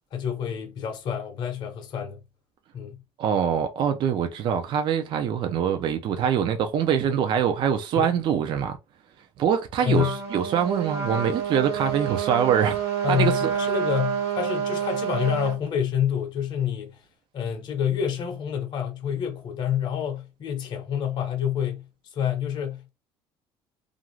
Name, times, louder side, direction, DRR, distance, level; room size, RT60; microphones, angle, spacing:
voice 1, 0.1-2.2 2.7-3.0 8.0-8.1 9.8-10.2 13.0-17.0 17.3-21.8 22.1-22.9, left 9 dB, 45° left, 0.7 m, -28 dB
voice 2, 3.2-8.8 9.4-12.8 13.1-13.5, right 8 dB, 50° right, 0.5 m, -24 dB
Trumpet, 9.9-15.6, right 7 dB, 85° right, 1.2 m, -28 dB
2.5 x 2.4 x 3.0 m
cardioid pair, 145°, 10 cm